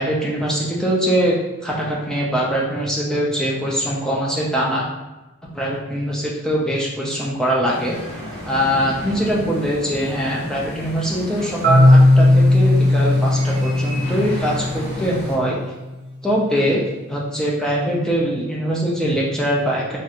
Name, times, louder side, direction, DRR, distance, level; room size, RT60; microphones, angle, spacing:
voice 1, 0.0-1.4 1.6-4.9 5.5-8.0 8.4-15.6 16.2-16.8 17.1-20.0, equal, 5° left, -5 dB, 0.5 m, -22 dB
sound 1, 7.7-15.3, left 1 dB, 25° left, 1.2 m, -33 dB
Marimba xylophone, 11.6-15.5, left 1 dB, 45° right, 0.5 m, -16 dB
3.1 x 2.4 x 2.8 m, 1.1 s
head